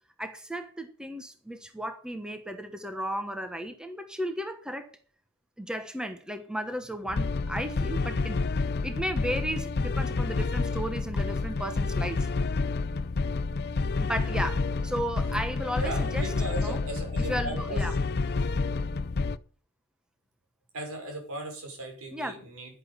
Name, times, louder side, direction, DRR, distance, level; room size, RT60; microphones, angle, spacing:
voice 1, 0.2-4.9 5.6-8.4 8.8-12.3 14.0-16.8 17.3-17.9 22.1-22.4, equal, 5° right, 7 dB, 1.2 m, -34 dB
sound 1, 7.1-19.4, left 3 dB, 50° left, 0.6 m, -29 dB
voice 2, 15.7-17.8 20.7-22.8, right 1 dB, 80° right, 3 dB, 6.0 m, -37 dB
11.0 x 11.0 x 5.8 m, 0.41 s
head